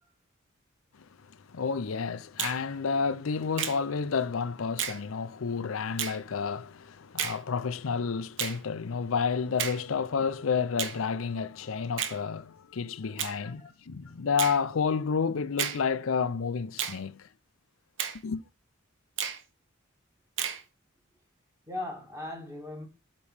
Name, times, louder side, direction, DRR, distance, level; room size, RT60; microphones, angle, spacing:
voice 1, 1.5-17.3 18.2-18.4, left 5 dB, 85° left, 0.5 m, -30 dB
Finger snapping, 2.4-2.6 3.6-3.8 4.8-5.0 6.0-6.2 7.2-7.4 8.4-8.6 9.6-9.8 10.8-11.0 12.0-12.2 13.2-13.4 14.4-14.6 15.6-15.8 16.8-17.0 18.0-18.2 19.2-19.4 20.4-20.6, right 8 dB, 65° right, 1.1 m, -32 dB
voice 2, 13.2-13.7 21.7-22.9, left 2 dB, 15° right, 2.3 m, -39 dB
8.6 x 3.1 x 6.5 m
head